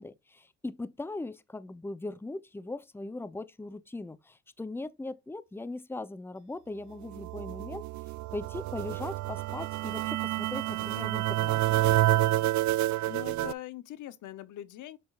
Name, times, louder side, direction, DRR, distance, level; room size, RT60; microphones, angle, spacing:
voice 1, 0.0-7.8 8.3-11.6, left 2 dB, 10° left, 0.7 m, -39 dB
sound 1, 7.0-13.5, right 15 dB, 70° right, 0.5 m, -28 dB
voice 2, 12.0-15.0, left 13 dB, 80° left, 0.9 m, -44 dB
6.9 x 6.6 x 2.4 m
cardioid pair, 90°, 30 cm